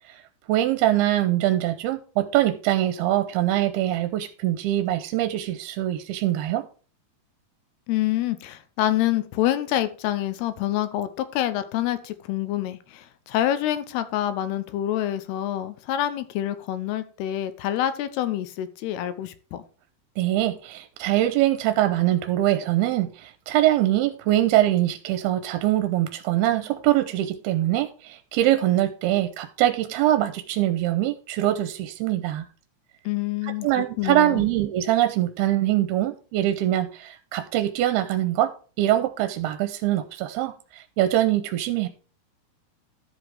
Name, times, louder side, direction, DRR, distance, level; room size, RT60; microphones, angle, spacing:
voice 1, 0.5-6.6 20.2-32.5 33.4-38.5 38.8-41.9, right 14 dB, 85° right, 2.6 m, -23 dB
voice 2, 7.9-19.6 33.1-34.5, left 12 dB, 80° left, 2.8 m, -27 dB
13.0 x 5.1 x 4.7 m
omnidirectional pair, 4.7 m